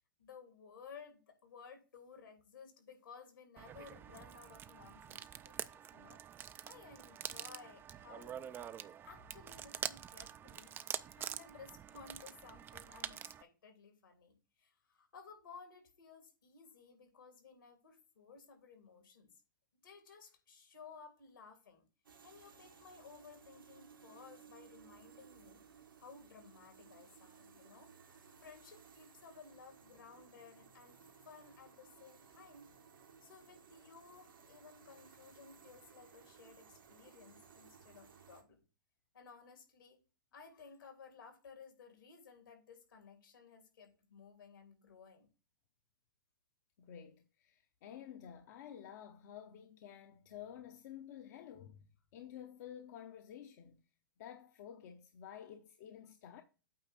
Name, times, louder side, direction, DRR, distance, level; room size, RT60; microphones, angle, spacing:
voice 1, 0.2-6.2 6.6-8.7 9.0-10.8 11.2-19.3 19.7-21.9 22.2-25.6 26.0-27.9 28.4-32.7 33.2-38.6 39.1-40.0 40.3-45.3, left 5 dB, 80° left, 3.1 m, -57 dB
sound 1, 3.6-13.4, right 9 dB, 20° right, 0.4 m, -46 dB
sound 2, 22.0-38.4, right 6 dB, 85° right, 1.8 m, -60 dB
voice 2, 46.8-53.8 54.2-56.4, left 9 dB, 50° left, 0.9 m, -51 dB
8.8 x 3.2 x 6.4 m
hypercardioid pair, 115°, 11 cm